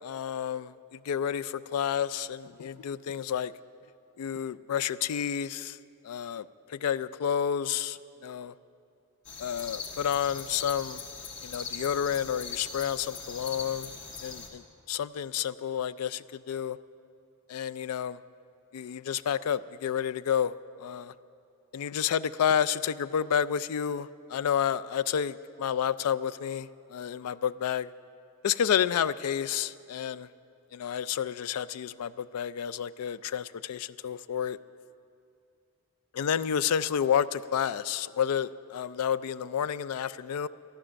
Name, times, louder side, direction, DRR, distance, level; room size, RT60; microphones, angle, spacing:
voice 1, 0.0-3.5 4.2-5.8 6.0-8.5 9.4-11.0 11.4-13.9 14.2-16.8 17.5-18.2 18.7-21.1 21.7-27.9 28.4-30.3 30.7-34.6 36.1-40.5, left 8 dB, 90° left, 16 dB, 0.4 m, -30 dB
sound 1, 9.2-14.5, left 5 dB, 55° left, 1.5 m, -40 dB
13.0 x 12.5 x 6.4 m, 2.6 s
head